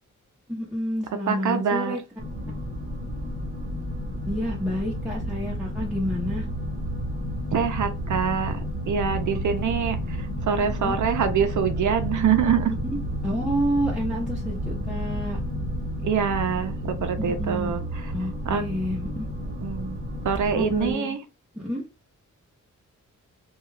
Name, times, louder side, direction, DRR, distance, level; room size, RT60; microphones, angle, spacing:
voice 1, 0.5-2.0 4.3-6.5 10.6-11.0 13.2-15.4 17.2-17.8 18.1-19.3 20.6-21.1 21.5-21.9, equal, 5° right, 0.6 m, -29 dB
voice 2, 1.3-2.0 7.5-8.6 8.9-12.7 16.0-18.1 18.4-18.6 19.4-20.0 20.2-21.2, right 7 dB, 70° right, 0.5 m, -25 dB
sound 1, 2.2-20.9, equal, 25° right, 0.9 m, -31 dB
2.3 x 2.3 x 3.1 m
wide cardioid pair, 130°, 31 cm